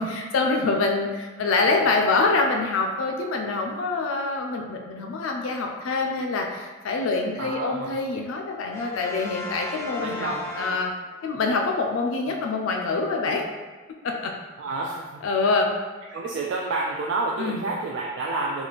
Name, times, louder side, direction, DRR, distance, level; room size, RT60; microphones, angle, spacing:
voice 1, 0.0-10.9 11.2-13.4 14.0-14.3 15.2-15.7 17.4-17.7, left 3 dB, 80° left, 2 dB, 0.4 m, -25 dB
voice 2, 7.4-8.0 10.0-10.8 12.3-12.4 14.6-15.2 16.1-18.7, right 3 dB, 65° right, -1 dB, 0.3 m, -29 dB
Brass instrument, 8.7-11.4, left 1 dB, 15° left, 0.5 m, -37 dB
3.0 x 2.3 x 4.1 m, 1.3 s
head